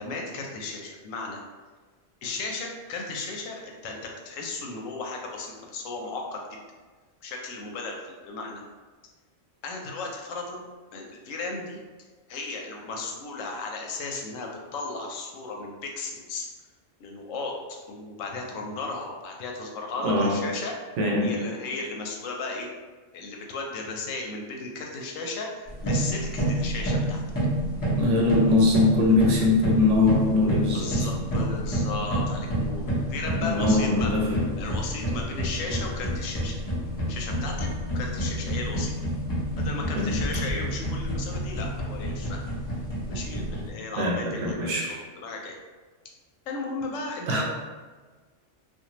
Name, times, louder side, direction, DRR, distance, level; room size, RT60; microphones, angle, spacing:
voice 1, 0.0-1.4 2.2-6.6 7.2-8.6 9.6-10.6 10.9-11.8 12.3-16.5 17.0-17.5 17.9-20.7 21.2-22.7 23.1-27.2 30.7-34.1 34.6-36.5 37.1-37.7 37.9-38.9 39.6-42.4 43.1-44.7 45.2-45.6 46.5-47.4, left 3 dB, 85° left, 1 dB, 1.0 m, -35 dB
voice 2, 20.0-20.5 21.0-21.5 28.0-30.9 33.4-34.5 40.0-40.2 44.0-45.0 47.3-47.4, left 2 dB, 70° right, -1 dB, 0.9 m, -22 dB
sound 1, 25.7-43.7, right 1 dB, 20° left, 0.6 m, -29 dB
2.6 x 2.3 x 2.9 m, 1.4 s
omnidirectional pair, 1.3 m